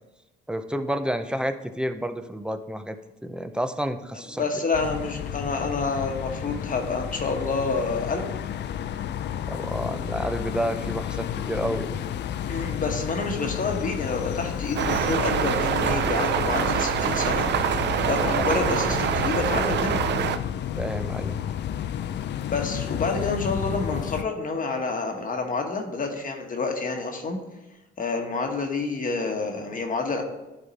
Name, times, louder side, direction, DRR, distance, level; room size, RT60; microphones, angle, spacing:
voice 1, 0.5-3.0 3.2-4.4 9.5-12.0 20.8-21.4, equal, 5° right, 9 dB, 0.5 m, -30 dB
voice 2, 4.3-8.2 12.5-17.5 18.1-20.1 22.5-27.4 28.0-30.2, left 3 dB, 45° left, 3 dB, 1.2 m, -28 dB
sound 1, 4.7-24.2, left 10 dB, 60° left, 0.5 m, -31 dB
sound 2, 14.8-20.4, right 8 dB, 60° right, 0.5 m, -25 dB
11.0 x 3.7 x 4.1 m, 1.0 s
cardioid pair, 90°, 20 cm